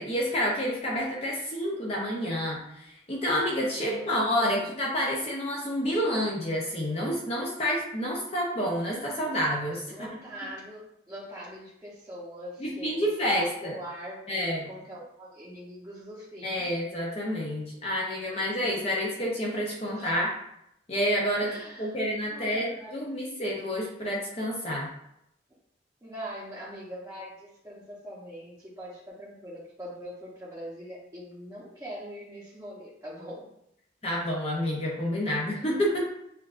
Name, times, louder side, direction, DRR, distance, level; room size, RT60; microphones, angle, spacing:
voice 1, 0.0-9.8 12.6-13.8 14.3-14.7 16.4-20.3 20.9-24.9 34.0-36.0, equal, 35° left, -3 dB, 0.7 m, -29 dB
voice 2, 3.7-4.7 9.9-16.6 19.8-20.2 21.4-22.0 22.3-22.9 26.0-33.5, equal, 15° right, -10 dB, 0.8 m, -42 dB
6.7 x 2.5 x 2.5 m, 0.78 s
head